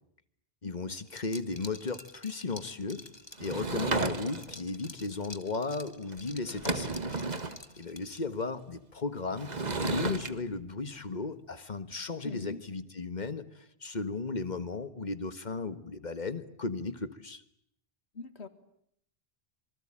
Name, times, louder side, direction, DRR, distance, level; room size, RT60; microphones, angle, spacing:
voice 1, 0.6-3.0 3.4-7.0 7.8-17.4, left 3 dB, 45° left, 12 dB, 1.7 m, -35 dB
Liquid, 1.1-8.5, left 2 dB, 25° left, 1.7 m, -50 dB
Sliding door / Wood, 3.4-4.6 6.1-6.2 6.5-7.6 9.4-10.3, right 3 dB, 40° right, 1.5 m, -33 dB
voice 2, 12.2-12.6 18.2-18.5, left 4 dB, 85° left, 11 dB, 2.3 m, -40 dB
26.5 x 24.5 x 8.9 m, 0.72 s
omnidirectional pair, 1.1 m